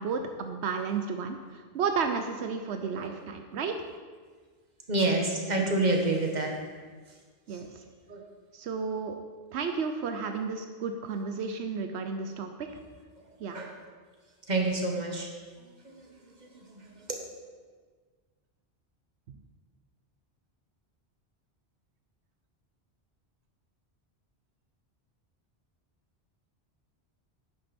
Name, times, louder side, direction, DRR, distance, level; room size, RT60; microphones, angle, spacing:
voice 1, 0.0-3.7 7.5-7.8 8.5-9.2 9.5-12.7 13.4-13.6 19.3-19.4, right 5 dB, 85° right, 6 dB, 1.0 m, -32 dB
voice 2, 2.7-3.1 3.5-3.6 4.9-6.5 7.5-7.6 8.1-8.2 13.5-13.7 14.5-15.3 15.8-17.2, right 2 dB, 40° right, 1 dB, 1.6 m, -29 dB
10.5 x 8.9 x 4.3 m, 1.5 s
omnidirectional pair, 1.1 m